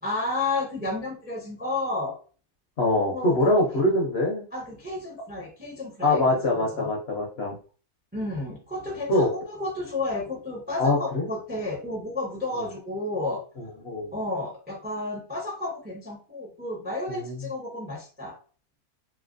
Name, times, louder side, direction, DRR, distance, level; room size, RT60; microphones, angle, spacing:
voice 1, 0.0-2.2 3.1-3.5 4.5-6.9 8.1-13.4 14.1-18.4, left 2 dB, 15° right, 0 dB, 0.4 m, -32 dB
voice 2, 2.8-4.5 6.0-7.6 9.1-9.3 10.8-11.3 13.8-14.1 17.1-17.3, left 2 dB, 55° left, -1 dB, 0.7 m, -23 dB
3.1 x 2.8 x 2.5 m, 0.38 s
omnidirectional pair, 1.6 m